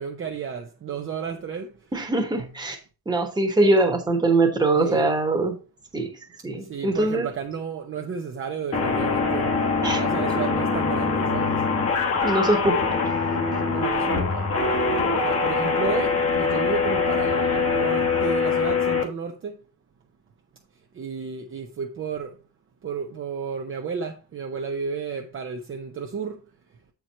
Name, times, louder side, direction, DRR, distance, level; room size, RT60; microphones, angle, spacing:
voice 1, 0.0-1.9 2.4-2.5 4.8-5.1 6.6-9.6 9.9-11.6 13.7-14.5 15.2-19.6 20.9-22.4 22.8-26.4, right 6 dB, 35° right, 0.6 m, -32 dB
voice 2, 1.9-2.8 3.1-5.6 5.9-6.1 6.4-7.3 9.8-10.0 12.2-13.0, right 2 dB, 10° right, 1.2 m, -22 dB
sound 1, 8.7-19.0, left 4 dB, 40° left, 1.2 m, -23 dB
7.7 x 4.6 x 4.2 m
wide cardioid pair, 175°, 37 cm